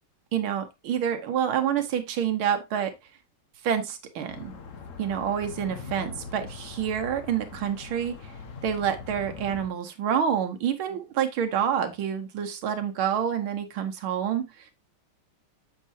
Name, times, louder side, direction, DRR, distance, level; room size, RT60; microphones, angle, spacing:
voice 1, 0.3-2.9 3.6-4.5 5.0-8.2 8.6-14.5, right 8 dB, 70° right, 6 dB, 1.8 m, -28 dB
sound 1, 4.3-9.7, left 5 dB, 55° left, 0.9 m, -41 dB
7.2 x 6.4 x 2.7 m, 0.22 s
omnidirectional pair, 2.4 m